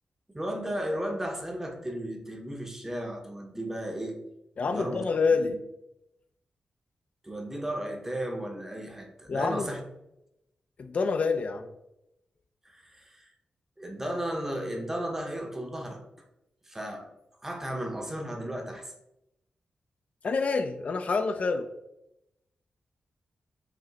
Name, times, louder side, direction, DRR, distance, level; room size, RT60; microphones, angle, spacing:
voice 1, 0.3-4.2 4.7-5.0 5.4-5.5 7.2-9.8 12.6-13.3 13.8-16.0 16.7-17.1 17.4-18.9, right 1 dB, 15° right, 3 dB, 0.8 m, -34 dB
voice 2, 4.6-5.6 9.3-9.7 10.8-11.7 20.2-21.7, left 4 dB, 50° left, 7 dB, 0.3 m, -27 dB
4.8 x 2.9 x 3.1 m, 0.85 s
wide cardioid pair, 95°, 3 cm